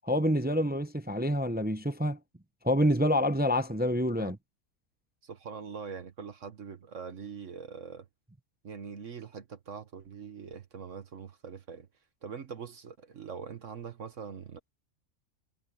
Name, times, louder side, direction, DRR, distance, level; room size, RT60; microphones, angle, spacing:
voice 1, 0.0-2.2 2.6-4.4, equal, 10° right, 0.4 m, -27 dB
voice 2, 5.2-8.1 8.6-11.9 12.2-14.7, right 6 dB, 60° right, 1.5 m, -43 dB
omnidirectional pair, 1.5 m